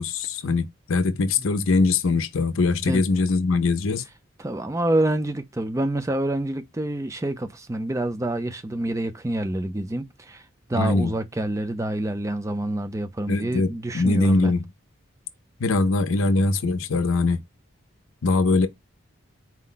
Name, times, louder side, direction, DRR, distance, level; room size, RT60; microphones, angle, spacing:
voice 1, 0.0-4.0 10.7-11.1 13.3-14.6 15.6-17.4 18.2-18.7, left 3 dB, 80° left, 0.6 m, -22 dB
voice 2, 4.4-14.5, right 1 dB, 15° right, 0.4 m, -27 dB
4.4 x 2.1 x 3.8 m
head